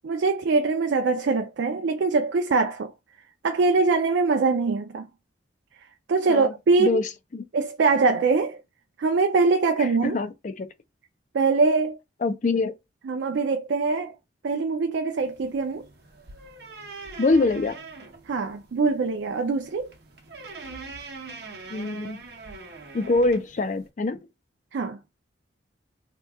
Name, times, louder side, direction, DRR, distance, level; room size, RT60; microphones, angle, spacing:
voice 1, 0.0-2.9 3.4-5.1 6.1-7.0 7.5-8.6 9.0-10.2 11.3-12.0 13.1-14.2 14.4-15.9 18.3-19.9 24.7-25.0, right 4 dB, 75° right, 0.4 m, -23 dB
voice 2, 6.8-7.4 10.0-10.7 12.2-12.7 17.2-17.8 21.7-22.2 22.9-24.2, left 3 dB, 45° left, 0.4 m, -24 dB
sound 1, 15.2-23.9, right 3 dB, 60° right, 0.8 m, -43 dB
2.9 x 2.3 x 3.4 m
head